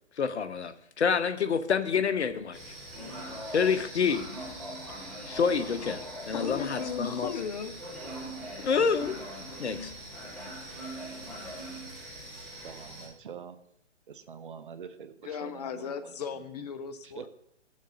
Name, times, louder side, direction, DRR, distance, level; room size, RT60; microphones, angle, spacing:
voice 1, 0.2-2.6 3.5-4.3 5.2-7.3 8.6-9.2 9.6-9.9, left 6 dB, 65° left, 12 dB, 0.9 m, -28 dB
sound 1, 2.5-13.1, right 1 dB, ahead, 5.3 m, -41 dB
voice 2, 6.3-7.8 15.2-17.3, left 7 dB, 35° left, 10 dB, 0.8 m, -36 dB
voice 3, 12.5-13.6 14.1-16.2 17.0-17.3, right 7 dB, 45° right, 12 dB, 0.7 m, -45 dB
15.0 x 7.3 x 4.1 m, 0.80 s
figure-of-eight pair, 145°, 37 cm